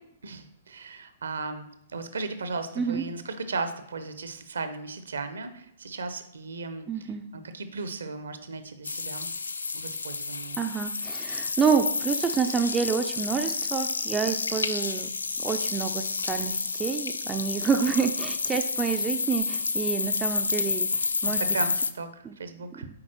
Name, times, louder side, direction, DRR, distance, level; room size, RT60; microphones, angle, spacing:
voice 1, 0.2-9.3 9.7-10.6 21.3-22.9, right 3 dB, 65° right, 10 dB, 0.6 m, -36 dB
voice 2, 6.9-7.2 10.6-15.1 15.4-21.6 22.2-22.4 22.8-22.9, right 6 dB, 15° right, 6 dB, 0.3 m, -28 dB
sound 1, 8.8-21.9, left 4 dB, 70° left, 0.3 m, -30 dB
8.6 x 4.3 x 2.9 m, 0.77 s
figure-of-eight pair, 115°, 0 cm